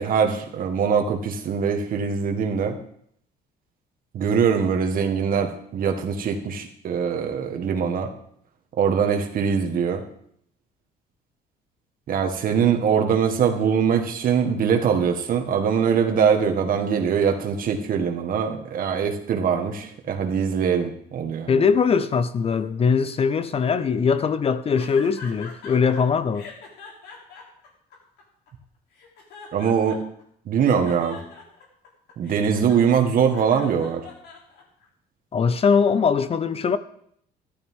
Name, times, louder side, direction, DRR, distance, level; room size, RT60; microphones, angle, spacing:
voice 1, 0.0-2.8 4.1-8.1 8.8-10.0 12.1-21.6 29.5-30.0 30.5-31.2 32.2-34.0, right 7 dB, 55° right, 1.6 m, -22 dB
voice 2, 21.5-26.5 35.3-36.8, left 6 dB, 35° left, 0.6 m, -21 dB
sound 1, 24.7-26.0 26.3-28.5 28.9-30.2 30.6-34.9, left 4 dB, 80° left, 3.3 m, -43 dB
14.0 x 11.5 x 3.7 m
cardioid pair, 110°, 17 cm